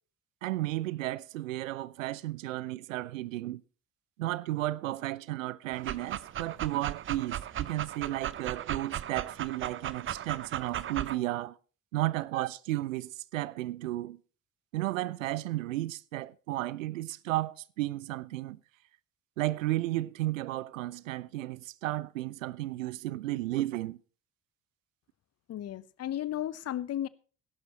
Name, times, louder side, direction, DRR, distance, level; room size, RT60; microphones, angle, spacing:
voice 1, 0.4-3.6 4.2-11.6 11.9-14.2 14.7-18.6 19.4-24.0, right 16 dB, 80° right, 0.5 m, -33 dB
Dog, 5.7-11.2, right 11 dB, 30° right, 0.6 m, -36 dB
voice 2, 25.5-27.1, left 12 dB, 40° left, 0.8 m, -34 dB
19.0 x 11.5 x 3.0 m
figure-of-eight pair, 45°, 39 cm